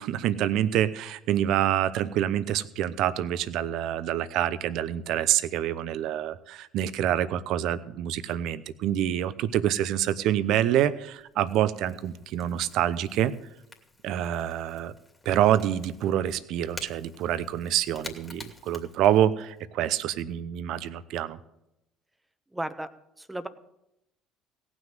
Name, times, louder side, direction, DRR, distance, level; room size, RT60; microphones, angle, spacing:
voice 1, 0.0-13.3 14.0-14.9 15.2-21.4, right 11 dB, 65° right, 16 dB, 0.7 m, -26 dB
Crackle / Crack, 10.4-19.6, left 2 dB, 15° left, 2.6 m, -49 dB
voice 2, 22.5-22.9 23.2-23.5, right 1 dB, 10° right, 12 dB, 1.0 m, -33 dB
17.5 x 6.2 x 7.4 m, 0.84 s
hypercardioid pair, 65°, 0 cm